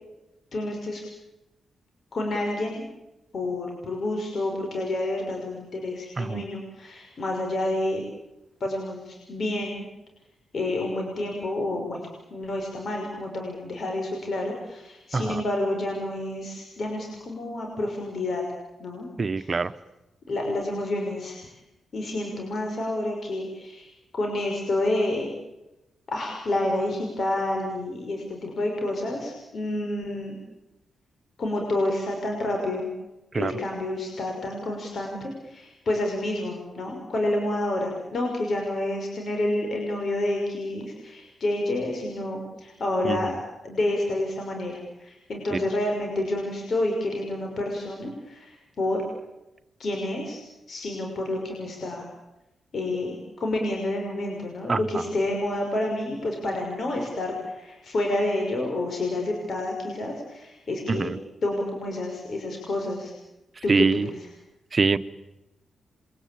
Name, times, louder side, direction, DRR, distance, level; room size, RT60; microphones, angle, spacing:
voice 1, 0.5-1.0 2.1-2.8 3.3-8.0 8.6-9.9 10.5-12.0 12.3-18.4 18.8-19.1 19.4-19.6 20.3-21.5 21.9-23.9 24.1-25.3 26.1-30.4 31.4-32.9 33.4-43.4 43.6-49.0 49.8-50.4 50.7-52.0 52.7-61.1 61.4-63.1 63.6-64.3, left 1 dB, 60° left, 1 dB, 6.2 m, -29 dB
voice 2, 19.2-19.7 33.3-33.5 43.0-43.3 45.5-45.6 54.7-55.0 60.9-61.2 63.7-64.1 64.7-65.0, right 4 dB, 40° right, 13 dB, 1.2 m, -24 dB
28.5 x 23.5 x 8.7 m, 0.96 s
supercardioid pair, 50°, 0 cm